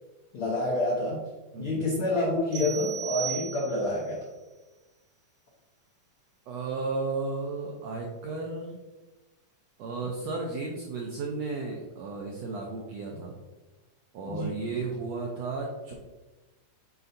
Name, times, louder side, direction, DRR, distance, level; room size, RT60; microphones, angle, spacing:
voice 1, 0.3-1.3 1.6-4.3 14.2-14.7, left 1 dB, 75° left, -4 dB, 1.2 m, -28 dB
voice 2, 1.5-1.8 6.5-8.8 9.8-13.4 14.1-15.9, right 3 dB, 80° right, -1 dB, 1.5 m, -34 dB
sound 1, 2.5-4.1, right 8 dB, 60° right, 1.6 m, -36 dB
8.3 x 4.3 x 2.6 m, 1.1 s
omnidirectional pair, 3.8 m